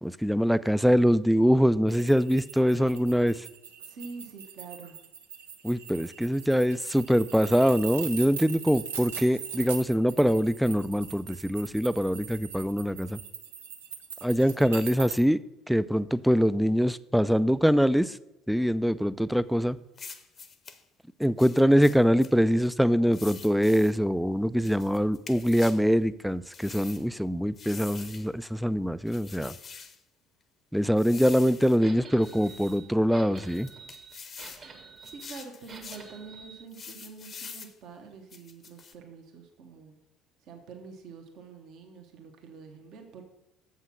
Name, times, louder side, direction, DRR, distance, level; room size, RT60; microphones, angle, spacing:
voice 1, 0.0-3.4 5.6-13.2 14.2-15.4 15.7-18.2 18.5-19.8 21.2-29.5 30.7-33.7, equal, ahead, 16 dB, 0.3 m, -24 dB
sound 1, 1.9-15.2, right 7 dB, 80° right, 0.7 m, -41 dB
voice 2, 3.9-5.0 35.1-40.0 40.4-43.2, right 5 dB, 55° right, 3 dB, 1.2 m, -46 dB
sound 2, 20.0-20.8 21.4-22.3 23.1-24.0 24.6-25.8 26.5-27.0 27.6-28.3 29.1-30.0 31.0-31.8 32.2-32.8 33.4-34.7 35.0-36.1 36.7-37.7 38.3-38.9, left 6 dB, 40° left, 0.8 m, -45 dB
sound 3, 31.8-36.6, right 4 dB, 40° right, 1.3 m, -48 dB
7.3 x 5.7 x 6.0 m, 0.94 s
figure-of-eight pair, 60°, 0 cm